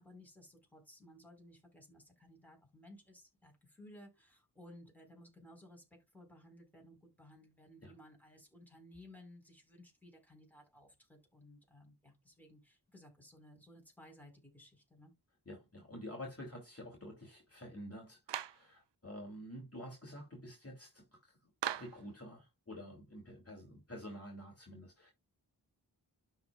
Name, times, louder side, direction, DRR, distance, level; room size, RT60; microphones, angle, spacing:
voice 1, 0.0-5.8 6.1-15.1, left 1 dB, 5° left, 4.6 m, -58 dB
voice 2, 15.4-25.1, equal, 35° left, 3.0 m, -49 dB
Clapping, 18.3-18.7 21.6-22.0, right 10 dB, 80° right, 0.5 m, -39 dB
12.0 x 4.4 x 2.4 m
wide cardioid pair, 50°, 42 cm